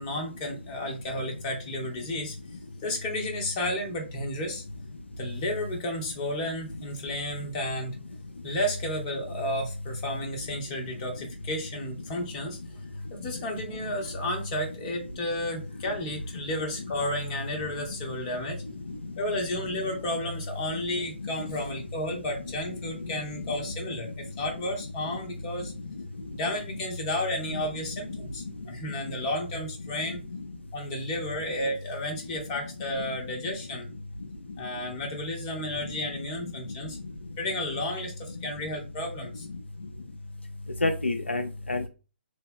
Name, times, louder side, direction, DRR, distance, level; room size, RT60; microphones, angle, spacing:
voice 1, 0.0-2.4 2.8-4.6 5.2-8.0 8.4-12.6 13.1-18.6 19.2-24.1 24.4-25.7 26.3-30.2 30.7-33.9 34.6-37.0 37.4-39.5, left 1 dB, 25° left, 1 dB, 1.1 m, -32 dB
voice 2, 18.6-19.1 19.7-19.8 20.7-20.8 21.2-21.8 22.1-22.2 22.7-23.7 24.0-24.1 25.0-25.2 25.9-26.3 27.5-27.6 27.9-28.5 30.1-30.4 33.1-33.2 33.4-33.5 35.8-36.2 36.9-37.0 38.4-38.5 40.8-41.9, left 2 dB, 75° left, 6 dB, 0.5 m, -33 dB
3.1 x 2.8 x 3.5 m, 0.32 s
figure-of-eight pair, 130°, 6 cm